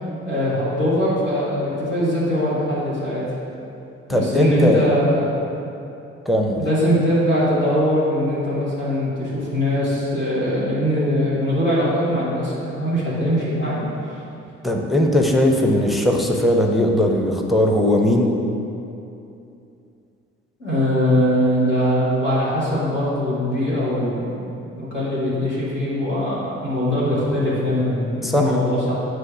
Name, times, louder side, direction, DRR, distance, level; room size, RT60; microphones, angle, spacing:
voice 1, 0.3-3.2 4.1-5.3 6.6-13.9 20.6-28.9, equal, 90° left, -10 dB, 1.7 m, -21 dB
voice 2, 4.1-4.9 6.3-6.6 14.6-18.4 28.2-28.5, left 1 dB, ahead, 1 dB, 0.7 m, -18 dB
9.2 x 3.2 x 6.2 m, 2.7 s
figure-of-eight pair, 45°, 35 cm